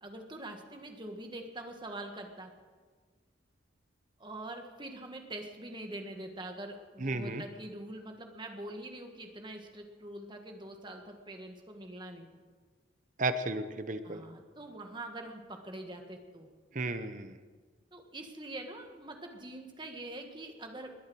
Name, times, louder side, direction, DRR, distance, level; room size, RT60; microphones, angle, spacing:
voice 1, 0.0-2.5 4.2-12.4 14.0-16.5 17.9-20.9, right 1 dB, 25° right, 4 dB, 1.5 m, -44 dB
voice 2, 7.0-7.4 13.2-14.2 16.7-17.4, right 2 dB, 40° right, 11 dB, 0.8 m, -34 dB
21.0 x 8.6 x 6.2 m, 1.5 s
head